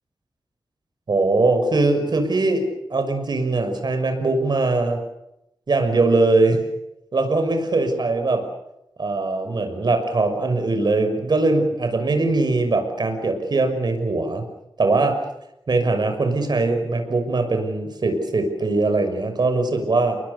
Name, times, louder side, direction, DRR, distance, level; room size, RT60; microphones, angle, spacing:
voice 1, 1.1-2.6 2.9-5.0 5.7-6.6 7.1-8.4 9.0-14.4 14.8-15.2 15.7-20.2, right 3 dB, 60° right, 7 dB, 6.2 m, -21 dB
30.0 x 22.5 x 6.9 m, 0.84 s
wide cardioid pair, 95°, 8 cm